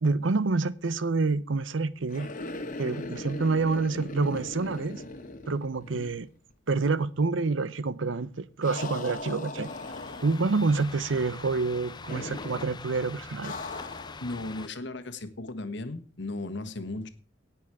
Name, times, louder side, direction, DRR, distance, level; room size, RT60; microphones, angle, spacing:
voice 1, 0.0-2.3 2.8-5.0 5.5-6.3 6.7-9.7 10.2-13.6, right 3 dB, 80° right, 0.7 m, -27 dB
sound 1, 2.1-6.2 6.5-6.6 8.6-10.6 12.1-12.7 13.4-14.3, left 2 dB, 45° left, 1.4 m, -39 dB
sound 2, 9.6-14.7, left 4 dB, 25° left, 0.5 m, -44 dB
voice 2, 14.2-17.1, left 2 dB, 65° left, 1.4 m, -36 dB
17.5 x 6.1 x 4.8 m
head